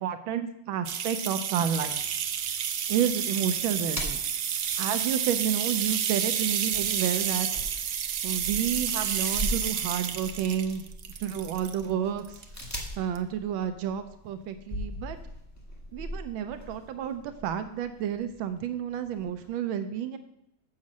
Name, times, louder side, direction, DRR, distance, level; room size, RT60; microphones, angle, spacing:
voice 1, 0.0-2.0 2.9-4.2 4.8-7.5 8.2-10.8 11.2-12.4 13.0-15.2 15.9-20.2, right 9 dB, 85° right, 9 dB, 1.5 m, -30 dB
sound 1, 0.8-11.8 12.2-12.8 13.1-13.2, right 8 dB, 65° right, 0.9 m, -30 dB
sound 2, 1.8-19.5, equal, 10° left, 1.5 m, -42 dB
7.3 x 6.6 x 7.2 m, 0.80 s
omnidirectional pair, 2.2 m